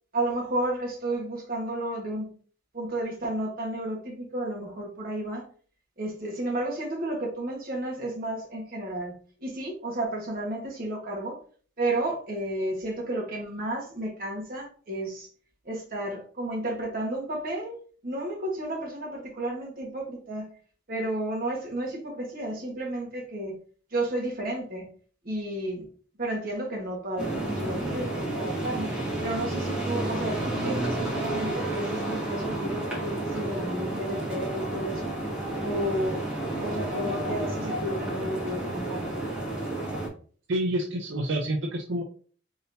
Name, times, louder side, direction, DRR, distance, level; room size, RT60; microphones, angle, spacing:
voice 1, 0.1-2.3 2.7-5.5 6.0-9.1 9.4-11.4 11.8-15.3 15.6-17.7 18.0-20.5 20.9-23.6 23.9-24.9 25.2-25.9 26.2-28.9 29.2-35.1 35.6-36.2 36.6-39.2, right 1 dB, 50° right, 1.4 m, -32 dB
sound 1, 27.2-40.1, right 1 dB, 5° right, 1.6 m, -31 dB
voice 2, 40.5-42.0, right 1 dB, 70° right, 0.6 m, -28 dB
4.0 x 3.8 x 2.7 m
head